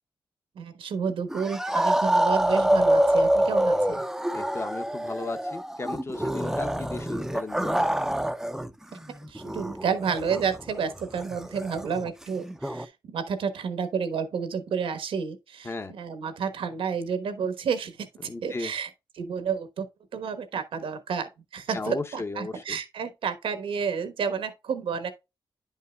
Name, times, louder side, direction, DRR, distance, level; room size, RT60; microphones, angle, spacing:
voice 1, 0.5-4.0 9.3-18.9 19.1-19.9 20.1-25.1, right 6 dB, 85° right, 1.2 m, -30 dB
sound 1, 1.3-8.7 9.0-12.9, right 1 dB, 5° right, 0.5 m, -26 dB
voice 2, 4.3-7.9 15.6-15.9 18.2-18.7 21.7-22.8, left 3 dB, 30° left, 0.8 m, -35 dB
10.5 x 5.6 x 2.3 m
cardioid pair, 90°, 9 cm